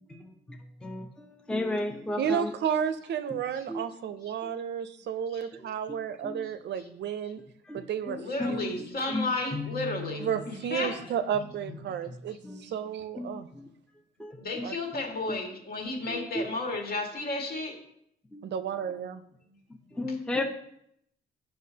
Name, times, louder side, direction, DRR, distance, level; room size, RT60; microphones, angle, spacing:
voice 1, 0.0-2.5 3.3-3.4 3.7-3.8 4.4-4.5 5.9-6.5 7.7-10.4 11.3-11.8 12.4-12.6 13.2-13.7 14.2-15.4 16.0-16.5 18.3-18.6 19.9-20.4, left 2 dB, 5° left, 2 dB, 0.6 m, -36 dB
voice 2, 2.2-7.4 7.7-8.8 10.2-13.5 14.6-14.8 18.4-19.2, right 8 dB, 65° right, 11 dB, 0.5 m, -32 dB
voice 3, 8.1-11.0 12.6-12.7 14.4-17.8, left 2 dB, 50° left, 1 dB, 1.9 m, -33 dB
9.2 x 5.7 x 2.8 m, 0.74 s
cardioid pair, 90°, 20 cm